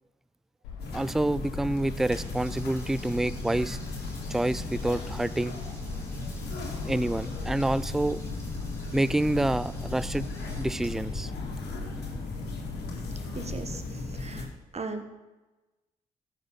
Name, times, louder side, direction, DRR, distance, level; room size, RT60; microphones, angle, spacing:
Bird vocalization bird call bird song, 0.6-13.5, left 5 dB, 90° left, 1.1 m, -47 dB
sound 1, 0.8-14.5, left 3 dB, 70° left, 2.0 m, -36 dB
voice 1, 0.9-3.8 4.3-5.6 6.9-8.2 8.9-10.3 10.6-11.3, right 1 dB, ahead, 17 dB, 0.3 m, -27 dB
Water tap faucet, 1.5-11.7, left 1 dB, 15° left, 3.7 m, -52 dB
voice 2, 13.3-14.5 14.7-15.0, right 4 dB, 40° right, 7 dB, 1.3 m, -38 dB
15.0 x 5.9 x 4.0 m, 1.1 s
hypercardioid pair, 45°, 17 cm